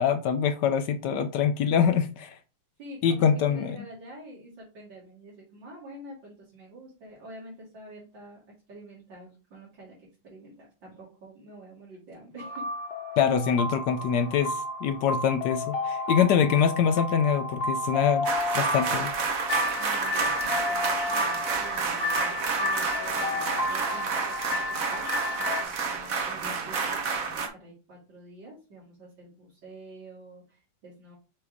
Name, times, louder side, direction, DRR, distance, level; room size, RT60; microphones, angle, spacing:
voice 1, 0.0-2.3 3.0-3.7 13.2-18.3 18.5-19.1, left 7 dB, 75° left, 1.1 m, -24 dB
voice 2, 2.8-8.4 8.7-12.7 19.7-24.6 24.9-31.1, right 1 dB, 80° right, 2.8 m, -47 dB
sound 1, 12.4-25.6, left 2 dB, 40° left, 1.1 m, -31 dB
sound 2, 18.3-27.5, right 5 dB, 55° right, 1.3 m, -30 dB
6.0 x 3.2 x 4.9 m
omnidirectional pair, 2.0 m